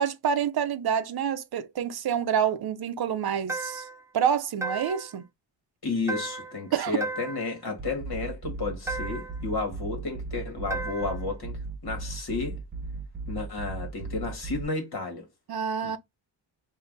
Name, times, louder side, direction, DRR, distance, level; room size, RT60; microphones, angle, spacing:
voice 1, 0.0-3.9 4.1-5.3 6.7-7.0 15.5-16.0, right 8 dB, 60° right, 0.6 m, -27 dB
sound 1, 3.5-4.0 4.6-5.2 6.1-6.6 7.0-7.6 8.9-9.4 10.7-11.2, right 2 dB, 5° right, 0.5 m, -34 dB
voice 2, 5.8-11.6 11.8-12.6 13.3-15.2 15.8-16.0, left 3 dB, 55° left, 1.8 m, -32 dB
sound 2, 7.8-14.6, right 3 dB, 25° right, 1.0 m, -37 dB
5.4 x 2.7 x 2.6 m
wide cardioid pair, 145°, 44 cm